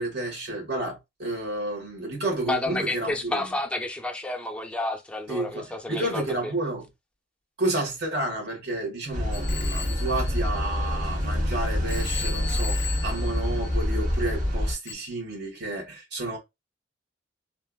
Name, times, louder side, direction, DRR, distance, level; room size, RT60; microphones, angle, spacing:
voice 1, 0.0-3.5 5.3-6.8 7.6-16.4, right 2 dB, 65° right, 1.5 m, -31 dB
voice 2, 2.5-6.5, left 2 dB, 5° left, 0.5 m, -30 dB
sound 1, 9.1-14.7, left 1 dB, 45° right, 1.2 m, -27 dB
Telephone, 9.3-11.4 11.9-14.2 14.9-15.0, left 7 dB, 80° left, 0.4 m, -38 dB
3.3 x 2.4 x 2.3 m
head